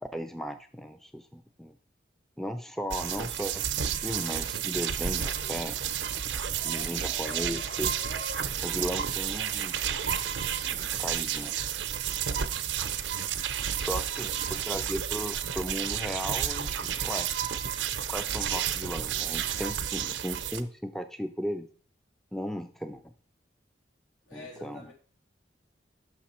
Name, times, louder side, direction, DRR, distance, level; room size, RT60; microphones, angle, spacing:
voice 1, 0.0-1.8 2.4-5.8 6.6-8.0 8.6-9.8 10.9-11.5 13.8-17.3 18.1-21.7 22.3-23.0 24.3-24.9, equal, ahead, 8 dB, 0.4 m, -36 dB
sound 1, 2.9-20.6, right 9 dB, 80° right, 0.6 m, -31 dB
sound 2, 5.0-9.1, left 2 dB, 55° left, 0.7 m, -48 dB
voice 2, 13.7-14.7 24.3-24.9, left 2 dB, 85° left, -2 dB, 2.6 m, -49 dB
6.0 x 5.9 x 4.2 m, 0.43 s
head